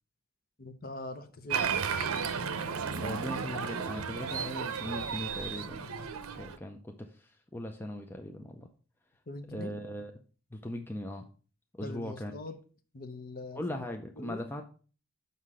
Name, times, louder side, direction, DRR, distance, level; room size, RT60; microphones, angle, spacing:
voice 1, 0.6-1.7 9.3-9.7 11.8-12.5 12.9-13.6 14.2-14.4, left 2 dB, 40° left, 0.8 m, -42 dB
Applause, 1.5-6.6, right 6 dB, 80° right, 0.6 m, -33 dB
voice 2, 2.9-5.8 6.3-8.7 9.5-10.1 10.5-11.3 11.7-12.3 13.5-14.6, left 1 dB, 10° left, 0.5 m, -39 dB
5.8 x 5.6 x 4.8 m
head